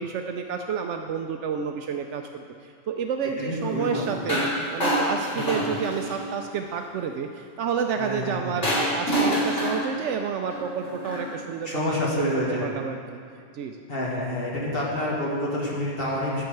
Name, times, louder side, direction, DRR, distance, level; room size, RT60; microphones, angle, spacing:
voice 1, 0.0-13.2 13.5-13.8, right 6 dB, 75° right, 4 dB, 0.9 m, -30 dB
voice 2, 3.4-4.2 5.3-5.7 8.0-8.6 11.6-12.7 13.9-16.4, left 1 dB, 50° left, -4 dB, 1.9 m, -28 dB
sound 1, 4.3-4.5 4.8-6.3 8.6-11.4, equal, 70° left, 3.6 m, -26 dB
10.5 x 5.7 x 7.7 m, 2.3 s
omnidirectional pair, 1.2 m